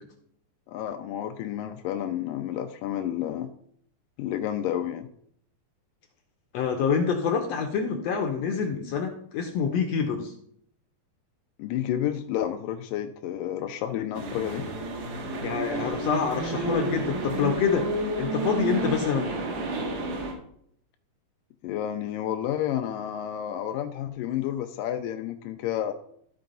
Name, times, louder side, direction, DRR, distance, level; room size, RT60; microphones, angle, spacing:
voice 1, 0.7-3.5 4.2-5.1 11.6-14.7 21.6-25.9, left 11 dB, 90° left, 7 dB, 2.3 m, -30 dB
voice 2, 6.5-10.3 15.4-17.9 18.2-19.3, left 6 dB, 70° left, 4 dB, 1.6 m, -26 dB
sound 1, 14.1-20.3, right 2 dB, 75° right, 3.0 m, -31 dB
14.0 x 4.7 x 3.9 m, 0.66 s
omnidirectional pair, 3.8 m